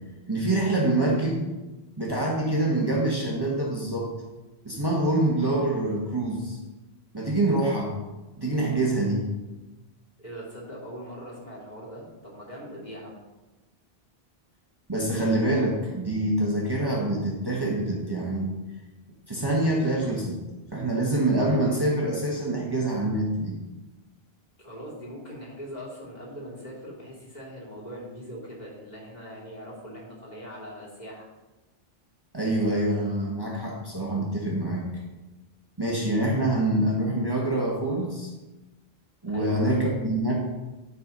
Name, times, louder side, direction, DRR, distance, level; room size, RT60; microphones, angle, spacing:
voice 1, 0.3-1.5 2.0-4.1 4.6-6.6 7.1-7.9 8.4-9.3 14.9-18.5 19.3-20.4 20.7-23.6 32.3-34.9 35.8-38.3 39.2-40.3, right 1 dB, 25° right, -4 dB, 1.6 m, -25 dB
voice 2, 10.2-13.2 24.6-31.2 39.3-39.9, equal, 45° left, -6 dB, 3.2 m, -41 dB
11.0 x 4.7 x 5.4 m, 1.1 s
omnidirectional pair, 1.0 m